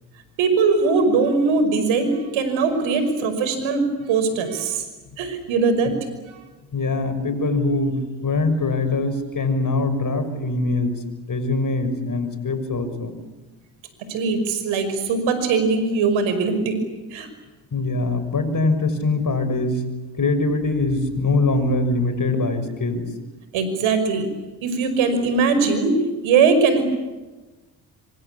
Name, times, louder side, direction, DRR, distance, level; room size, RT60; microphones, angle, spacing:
voice 1, 0.4-4.8 5.2-5.9 6.3-6.4 14.1-16.8 17.1-17.3 23.5-24.3 24.6-26.8, right 4 dB, 80° right, 10 dB, 5.7 m, -20 dB
voice 2, 6.7-11.0 11.3-13.2 17.7-19.8 20.2-23.1, left 2 dB, 45° left, 9 dB, 6.5 m, -23 dB
26.0 x 25.5 x 8.6 m, 1.2 s
supercardioid pair, 55°, 46 cm